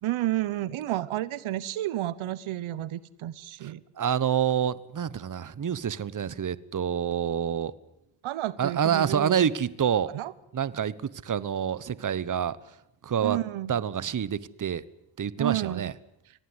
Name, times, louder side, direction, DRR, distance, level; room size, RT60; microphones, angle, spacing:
voice 1, 0.0-3.8 8.2-9.5 10.1-10.3 13.2-13.7 15.4-15.9, right 15 dB, 90° right, 1.1 m, -31 dB
voice 2, 4.0-7.7 8.6-10.1 10.5-12.6 13.0-13.4 13.7-14.8 15.2-15.9, right 8 dB, 40° right, 1.1 m, -27 dB
25.5 x 18.0 x 9.8 m
cardioid pair, 85°, 47 cm